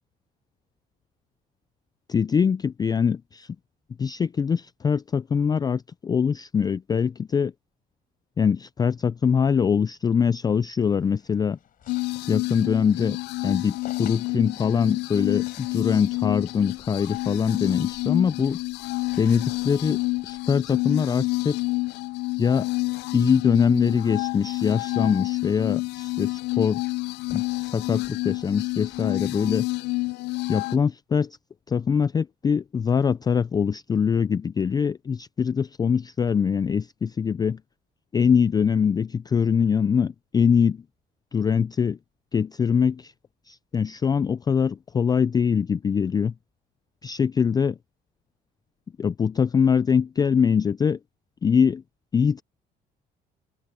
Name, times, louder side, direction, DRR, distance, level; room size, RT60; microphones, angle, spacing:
voice 1, 2.1-3.6 4.0-7.5 8.4-11.6 12.3-13.2 13.4-18.6 19.2-21.6 22.4-22.7 23.1-26.8 27.3-29.7 30.5-31.4 31.7-37.6 38.1-40.8 41.3-42.0 42.3-43.1 43.5-46.3 47.0-47.8 49.0-51.0 51.4-51.8 52.1-52.4, left 6 dB, 25° left, 0.3 m, -23 dB
sound 1, 10.8-29.3, left 10 dB, 55° left, 7.7 m, -54 dB
sound 2, 11.9-30.8, left 23 dB, 85° left, 0.4 m, -29 dB
open air
cardioid pair, 110°, 17 cm